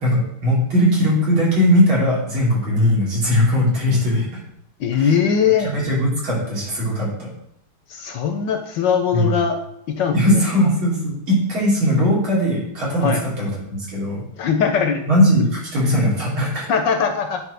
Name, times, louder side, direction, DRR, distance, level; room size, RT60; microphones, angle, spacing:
voice 1, 0.0-4.3 4.9-5.1 5.7-7.3 9.1-9.3 10.1-14.2 15.1-16.7, equal, 70° right, -6 dB, 3.8 m, -19 dB
voice 2, 4.8-5.7 7.9-9.6 9.9-10.4 13.0-13.2 14.4-15.0 15.4-15.5 16.7-17.4, left 7 dB, 70° left, 6 dB, 1.2 m, -20 dB
9.4 x 5.0 x 3.3 m, 0.76 s
omnidirectional pair, 2.3 m